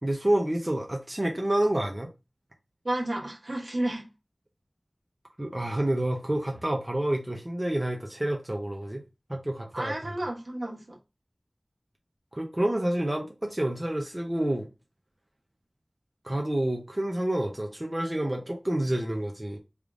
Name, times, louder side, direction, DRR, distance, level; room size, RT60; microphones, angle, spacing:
voice 1, 0.0-2.1 5.4-9.0 9.3-9.9 12.3-14.7 16.2-19.6, right 1 dB, 30° right, 0.6 m, -28 dB
voice 2, 2.8-4.0 9.7-11.0, right 1 dB, 65° right, 1.1 m, -31 dB
3.5 x 2.4 x 3.5 m
wide cardioid pair, 50°, 0 cm